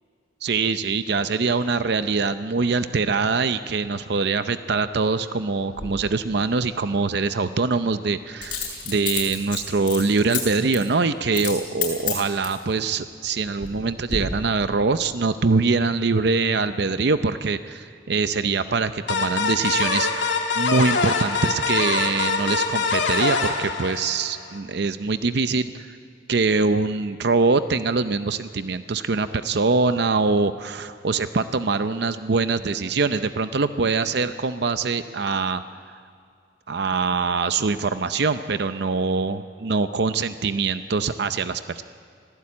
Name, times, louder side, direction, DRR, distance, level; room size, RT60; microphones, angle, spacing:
voice 1, 0.4-26.0 26.3-35.6 36.7-41.8, right 4 dB, 60° right, 11 dB, 0.6 m, -23 dB
Coin (dropping), 5.7-5.9 8.4-10.4 10.7-10.9 11.3-11.6 11.8-12.6 13.2-13.8 14.1-14.2, left 8 dB, 45° left, 7.4 m, -29 dB
sound 1, 19.1-24.5, left 4 dB, 75° left, 2.3 m, -24 dB
25.0 x 17.0 x 8.6 m, 2.4 s
head